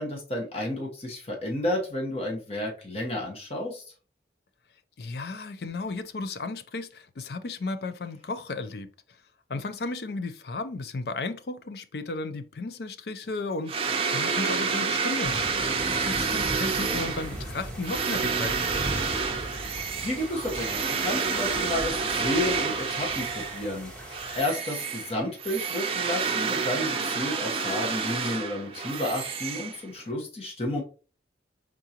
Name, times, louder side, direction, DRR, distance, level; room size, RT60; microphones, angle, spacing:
voice 1, 0.0-3.8 20.0-23.9 24.4-30.8, left 1 dB, 35° left, 1.1 m, -31 dB
voice 2, 5.0-8.9 9.5-15.4 16.0-18.8, left 3 dB, 60° left, 0.5 m, -34 dB
sound 1, 13.7-23.7 24.1-30.1, right 5 dB, 30° right, 0.6 m, -29 dB
sound 2, 15.2-24.4, right 1 dB, 5° left, 1.0 m, -39 dB
4.7 x 3.7 x 2.8 m
head